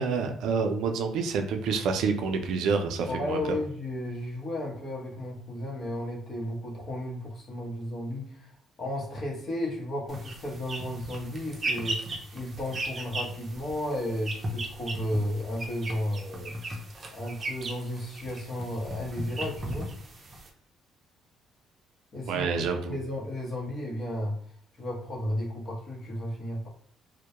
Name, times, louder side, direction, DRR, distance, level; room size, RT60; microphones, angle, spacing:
voice 1, 0.0-3.4 22.3-23.0, right 5 dB, 80° right, 5 dB, 0.4 m, -28 dB
voice 2, 3.1-8.5 8.8-16.6 17.1-19.9 22.1-24.4 24.8-26.7, left 1 dB, 45° left, -2 dB, 0.9 m, -34 dB
sound 1, 10.1-20.5, right 1 dB, 30° right, 0.5 m, -36 dB
2.2 x 2.1 x 2.9 m, 0.62 s
cardioid pair, 115°, 0 cm